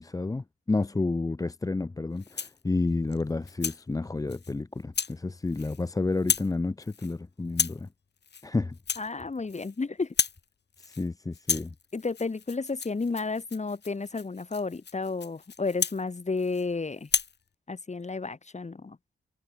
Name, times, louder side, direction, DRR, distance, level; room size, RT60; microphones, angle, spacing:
voice 1, 0.0-7.9 8.4-8.8 10.8-11.7, left 3 dB, 15° left, 0.6 m, -30 dB
Rattle (instrument), 2.2-2.6 3.1-3.8 4.3-4.5 4.9-5.2 5.5-5.9 6.1-6.5 6.8-7.1 7.5-7.9 8.2-8.5 8.7-9.8 10.0-10.4 10.7-11.1 11.3-16.7 17.0-17.4, left 6 dB, 60° left, 4.0 m, -33 dB
voice 2, 9.0-10.1 11.9-17.1 17.7-19.0, left 3 dB, 35° left, 4.3 m, -32 dB
cardioid pair, 65°, 20 cm